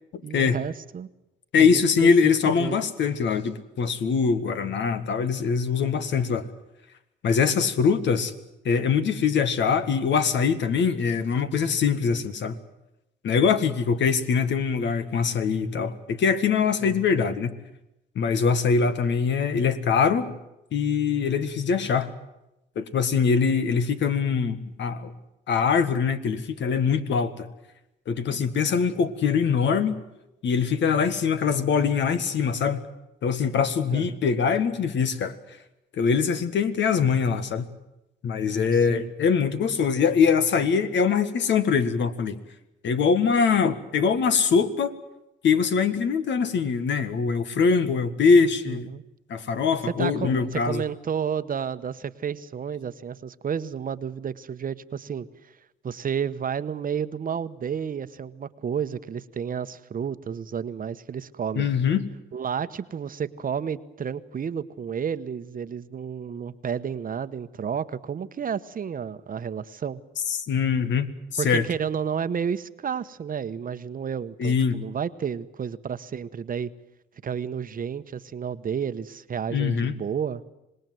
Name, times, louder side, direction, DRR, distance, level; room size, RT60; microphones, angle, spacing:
voice 1, 0.2-1.1 1.6-2.9 16.8-17.1 33.9-34.2 38.9-39.1 48.7-49.0 49.8-55.3 55.8-61.7 62.3-70.0 71.4-76.7 77.2-80.4, right 7 dB, 45° right, 13 dB, 1.1 m, -31 dB
voice 2, 1.5-6.5 7.2-8.3 8.7-12.6 13.2-17.6 18.2-20.4 20.7-22.1 22.8-25.1 25.5-27.5 28.1-30.0 30.4-32.8 33.2-35.3 36.0-37.7 38.2-42.4 42.8-44.9 45.4-48.9 49.3-50.8 61.6-62.1 70.3-71.7 74.4-74.8 79.5-79.9, left 6 dB, 65° left, 10 dB, 1.8 m, -23 dB
26.0 x 19.5 x 7.8 m, 0.90 s
cardioid pair, 90°, 20 cm